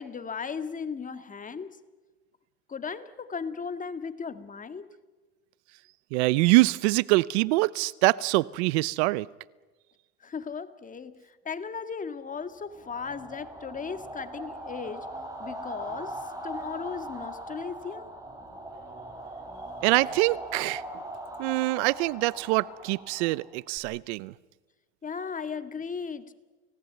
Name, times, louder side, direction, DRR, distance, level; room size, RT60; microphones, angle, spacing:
voice 1, 0.0-1.8 2.7-4.9 10.2-15.1 15.4-18.1 25.0-26.3, left 5 dB, 25° left, 1.8 m, -36 dB
voice 2, 6.1-9.3 19.8-20.8 21.4-24.3, right 22 dB, 85° right, 0.7 m, -24 dB
sound 1, 12.7-23.8, right 1 dB, 10° right, 7.0 m, -40 dB
30.0 x 18.5 x 9.3 m
supercardioid pair, 105°, 33 cm